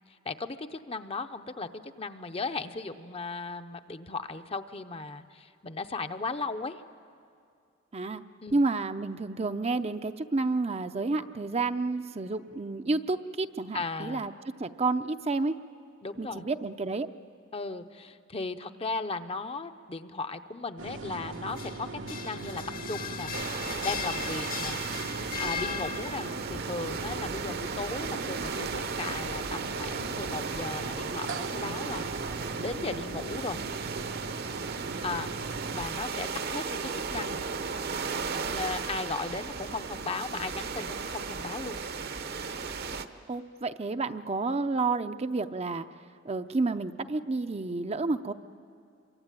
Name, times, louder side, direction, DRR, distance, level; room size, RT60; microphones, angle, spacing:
voice 1, 0.2-6.8 8.4-8.6 13.7-14.3 16.0-16.5 17.5-23.3 23.8-24.8 25.4-32.1 32.6-33.6 35.0-35.3 35.7-37.5 38.4-41.8, left 3 dB, 30° left, 9 dB, 0.7 m, -36 dB
voice 2, 8.5-14.3 14.6-15.6 16.2-17.1 43.3-45.9 46.2-48.3, right 3 dB, 35° right, 9 dB, 0.6 m, -30 dB
sound 1, 20.8-35.8, right 3 dB, 90° right, 1.5 m, -39 dB
sound 2, 21.3-26.5, left 7 dB, 50° left, 1.0 m, -37 dB
sound 3, 23.3-43.1, right 5 dB, 55° right, 0.9 m, -35 dB
27.0 x 23.5 x 9.1 m, 2.4 s
head